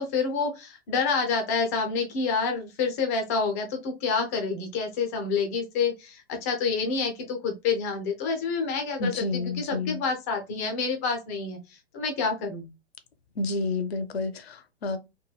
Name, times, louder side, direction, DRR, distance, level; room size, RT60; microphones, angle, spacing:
voice 1, 0.0-12.7, left 5 dB, 15° left, 0.3 m, -28 dB
voice 2, 9.0-10.0 13.4-15.0, left 3 dB, 70° left, 0.6 m, -30 dB
2.9 x 2.6 x 2.2 m
figure-of-eight pair, 110°, 33 cm